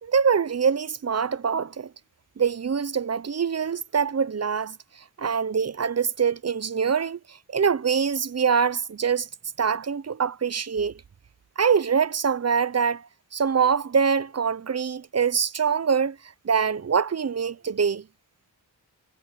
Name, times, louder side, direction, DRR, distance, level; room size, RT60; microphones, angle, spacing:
voice 1, 0.0-1.9 2.4-4.7 5.2-9.3 9.6-10.9 11.6-16.2 16.4-18.0, right 6 dB, 40° right, 0.7 m, -24 dB
wide cardioid pair, 75°, 40 cm